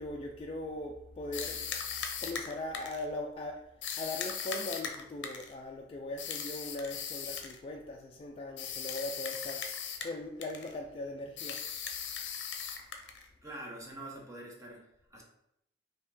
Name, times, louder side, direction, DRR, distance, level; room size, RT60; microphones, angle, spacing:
voice 1, 0.0-1.6 2.2-3.7 4.0-11.6, left 2 dB, 30° left, 1 dB, 0.3 m, -40 dB
sound 1, 1.3-3.1 3.8-5.5 6.2-7.6 8.6-10.2 10.4-10.7 11.4-13.3, left 7 dB, 75° left, 0.6 m, -38 dB
voice 2, 13.4-15.2, right 1 dB, 20° right, -2 dB, 0.8 m, -46 dB
4.1 x 2.8 x 3.6 m, 0.79 s
head